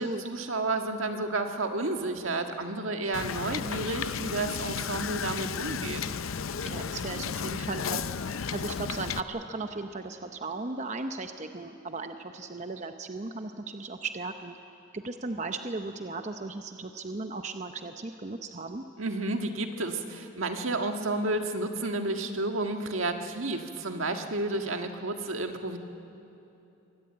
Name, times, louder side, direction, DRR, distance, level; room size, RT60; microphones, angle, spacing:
voice 1, 0.0-6.0 19.0-25.8, right 2 dB, 75° right, 5 dB, 1.7 m, -31 dB
Wind / Boat Water vehicle, 3.1-9.2, left 6 dB, 80° left, 0.6 m, -33 dB
voice 2, 6.7-14.6 14.9-18.8, right 3 dB, 35° right, 7 dB, 0.8 m, -36 dB
24.0 x 19.5 x 8.8 m, 3.0 s
head